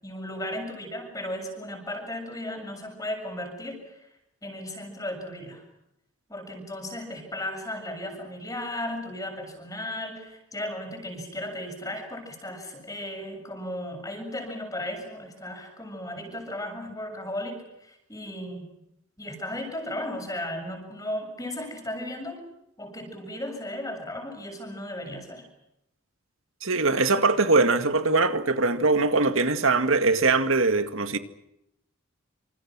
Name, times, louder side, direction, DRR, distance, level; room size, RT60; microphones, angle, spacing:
voice 1, 0.0-4.1 4.4-5.6 6.3-18.7 19.2-22.4 22.8-25.5, left 1 dB, 15° left, 7.1 m, -35 dB
voice 2, 26.6-31.2, right 3 dB, 75° right, 2.1 m, -22 dB
27.5 x 27.5 x 6.2 m
head